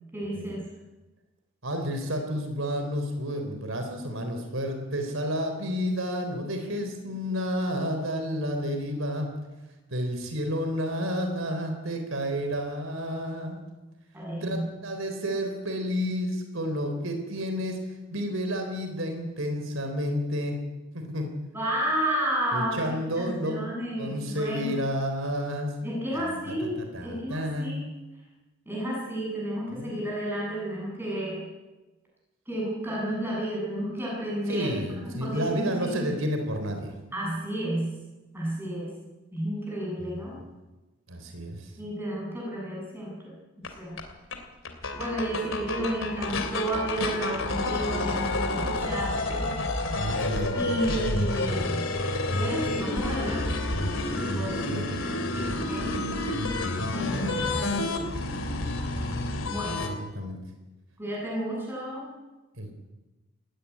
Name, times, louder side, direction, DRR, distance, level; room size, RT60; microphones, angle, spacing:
voice 1, 0.1-0.6 14.1-14.7 21.5-24.8 25.8-27.9 28.7-31.5 32.5-34.7 35.0-36.1 37.1-38.0 38.3-39.0 39.3-40.4 41.8-43.3 43.7-44.0 44.9-49.5 50.5-51.8 52.3-53.6 54.2-54.9 55.5-55.9 56.9-58.1 59.5-59.8 61.0-62.1, right 1 dB, 10° right, -4 dB, 7.9 m, -32 dB
voice 2, 1.6-9.3 9.9-13.6 14.4-20.6 20.9-21.3 22.5-23.7 24.0-25.7 26.2-27.8 29.7-30.0 34.5-36.9 40.1-40.2 41.1-41.7 49.9-50.7 54.7-55.1 57.3-57.8 59.7-60.4 62.5-62.7, equal, 70° right, 5 dB, 3.6 m, -31 dB
sound 1, 43.6-43.7 44.0-44.1 44.3-44.4 44.7-59.9, left 2 dB, 65° left, 2.9 m, -29 dB
18.5 x 15.5 x 9.7 m, 1.1 s
head